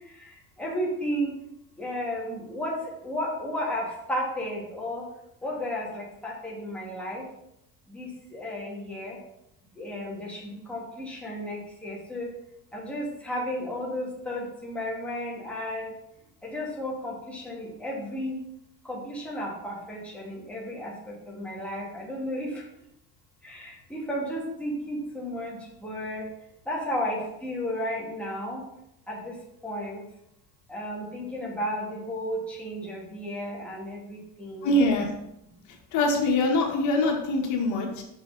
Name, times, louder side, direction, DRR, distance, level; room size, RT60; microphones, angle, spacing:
voice 1, 0.6-1.3 1.8-5.1 5.4-7.3 7.9-9.2 9.8-12.3 12.7-15.9 16.4-18.3 18.8-22.6 23.4-26.3 26.7-28.6 29.1-29.4 29.6-30.0 30.7-34.8, equal, 5° left, -5 dB, 2.5 m, -33 dB
voice 2, 34.6-35.1 35.9-38.0, left 2 dB, 65° left, 1 dB, 1.8 m, -23 dB
6.5 x 6.2 x 4.1 m, 0.81 s
cardioid pair, 130°, 32 cm